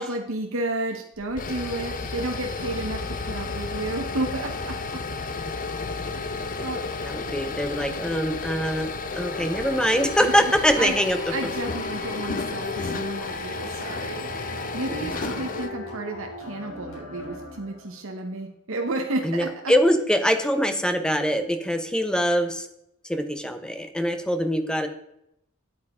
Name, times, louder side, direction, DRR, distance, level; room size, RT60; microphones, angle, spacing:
voice 1, 0.0-5.0 6.1-6.8 10.2-10.9 11.3-19.7, right 2 dB, 65° right, 3 dB, 1.1 m, -32 dB
sound 1, 1.2-15.7, left 3 dB, 40° left, 0.7 m, -32 dB
voice 2, 7.0-8.9 9.2-11.2 14.9-15.4 19.2-22.7 23.1-24.9, equal, 5° left, 8 dB, 0.8 m, -23 dB
sound 2, 9.1-18.0, left 3 dB, 65° left, 3.8 m, -37 dB
9.0 x 8.6 x 3.7 m, 0.78 s
head